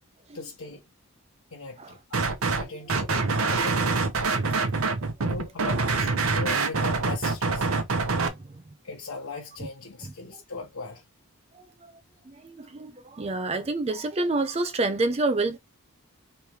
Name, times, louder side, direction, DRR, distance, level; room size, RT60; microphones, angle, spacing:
voice 1, 0.3-0.8 1.5-2.2 2.6-4.1 5.2-7.7 8.8-11.0, left 3 dB, 80° left, 1.0 m, -39 dB
sound 1, 2.1-2.6 2.9-8.3, right 4 dB, 80° right, 0.9 m, -25 dB
voice 2, 12.4-15.6, right 2 dB, 30° right, 0.4 m, -27 dB
3.2 x 3.0 x 4.6 m
head